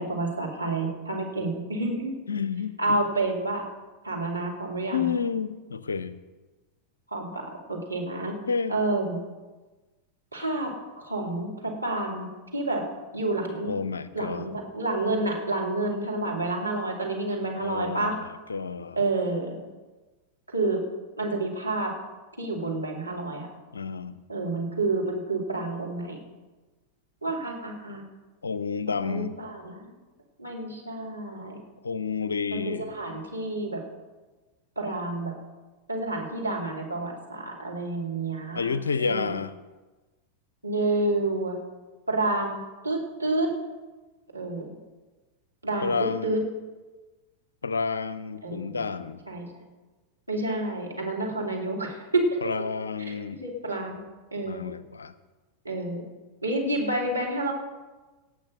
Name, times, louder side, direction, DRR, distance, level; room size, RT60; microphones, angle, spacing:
voice 1, 0.0-2.1 2.8-3.6 4.0-5.1 7.1-8.3 8.7-9.2 10.3-10.7 11.0-12.8 13.1-13.7 14.1-18.1 19.0-19.6 20.5-20.8 21.2-21.9 22.4-23.5 24.3-26.2 27.2-28.0 29.0-29.9 30.4-31.6 32.5-33.8 34.8-35.3 35.9-38.7 39.0-39.4 40.6-41.6 42.1-43.5 44.3-44.7 45.6-46.4 48.4-48.8 49.3-49.4 50.3-52.2 53.0-54.0 54.3-54.7 55.6-56.0 56.4-57.5, right 2 dB, 85° right, -2 dB, 2.7 m, -29 dB
voice 2, 2.3-3.0 4.9-6.1 8.5-8.8 13.6-14.5 17.6-19.0 23.7-24.1 28.4-29.4 31.8-32.9 38.5-39.5 45.8-46.3 47.6-49.2 52.4-53.4 54.5-55.1, left 5 dB, 75° left, 15 dB, 0.6 m, -30 dB
18.0 x 6.4 x 6.3 m, 1.2 s
figure-of-eight pair, 90°, 0 cm